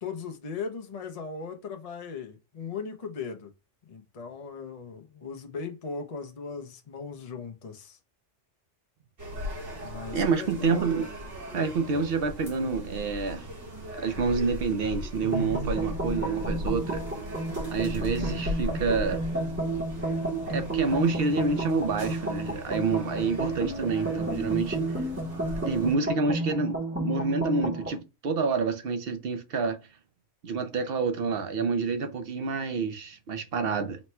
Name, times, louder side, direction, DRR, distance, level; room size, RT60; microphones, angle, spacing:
voice 1, 0.0-3.5 3.9-8.0 9.8-10.9, left 5 dB, 45° left, 0.5 m, -38 dB
sound 1, 9.2-25.9, left 1 dB, 80° right, 2.2 m, -38 dB
voice 2, 10.1-11.1 11.5-13.5 13.9-17.0 17.7-19.2 20.5-24.8 25.6-29.8 30.4-34.0, right 4 dB, 60° right, 0.8 m, -28 dB
sound 2, 15.2-28.0, right 2 dB, 15° right, 0.8 m, -32 dB
4.1 x 2.2 x 4.3 m
omnidirectional pair, 1.2 m